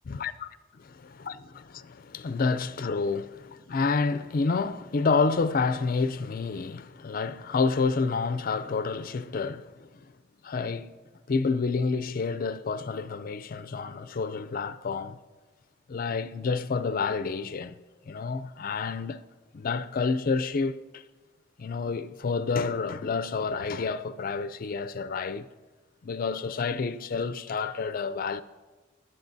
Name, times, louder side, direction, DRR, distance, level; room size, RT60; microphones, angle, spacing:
voice 1, 0.9-10.0 10.4-10.9 11.3-15.2 15.9-17.8 18.1-19.2 19.5-21.0 21.6-25.5 26.0-28.4, left 4 dB, 45° left, 0.4 m, -29 dB
22.0 x 7.6 x 2.7 m
head